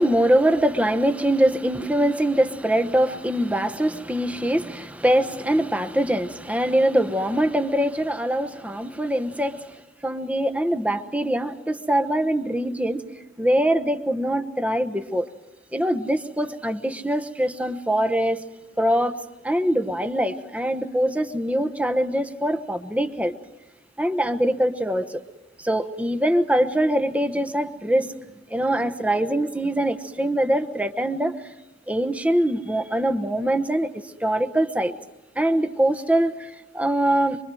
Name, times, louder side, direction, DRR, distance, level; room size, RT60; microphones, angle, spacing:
voice 1, 0.0-9.7 10.0-13.0 13.4-15.3 15.7-18.4 18.8-19.2 19.4-23.3 24.0-25.2 25.6-28.1 28.5-31.3 31.9-34.9 35.4-37.4, right 1 dB, 10° right, 1.0 m, -23 dB
25.0 x 24.0 x 7.7 m
head